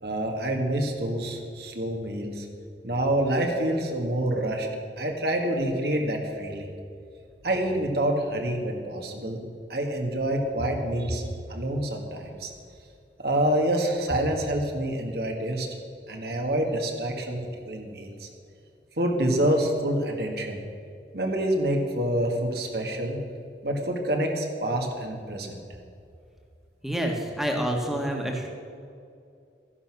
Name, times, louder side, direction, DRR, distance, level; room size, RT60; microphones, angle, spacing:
voice 1, 0.0-2.5 2.8-4.7 5.0-6.7 7.4-9.4 9.7-11.2 11.5-12.5 13.2-15.7 16.1-18.3 19.0-20.6 21.1-23.2 23.6-25.6, right 1 dB, 65° right, 2 dB, 1.9 m, -27 dB
voice 2, 26.8-28.5, right 1 dB, ahead, 1 dB, 1.7 m, -28 dB
14.0 x 11.0 x 6.2 m, 2.5 s
head